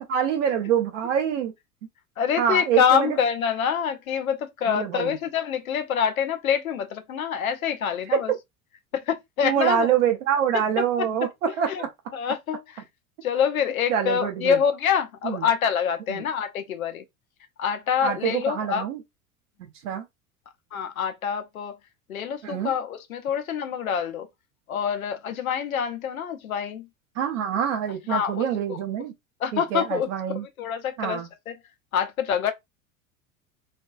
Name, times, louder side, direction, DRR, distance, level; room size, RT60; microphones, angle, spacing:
voice 1, 0.0-1.5 2.4-3.2 4.7-5.1 9.4-11.9 13.9-14.6 15.2-15.4 16.1-16.2 18.0-19.0 19.8-20.0 22.4-22.7 27.2-29.1 29.5-30.5 31.0-31.3, right 8 dB, 60° right, 0.7 m, -25 dB
voice 2, 2.2-8.3 8.9-9.9 11.7-11.8 12.1-12.8 13.2-17.0 17.6-18.8 20.7-21.8 22.1-24.3 24.7-26.9 28.1-28.8 29.4-30.1 30.6-31.5 31.9-32.5, left 8 dB, 75° left, 0.6 m, -26 dB
2.5 x 2.2 x 2.3 m
figure-of-eight pair, 75°, 42 cm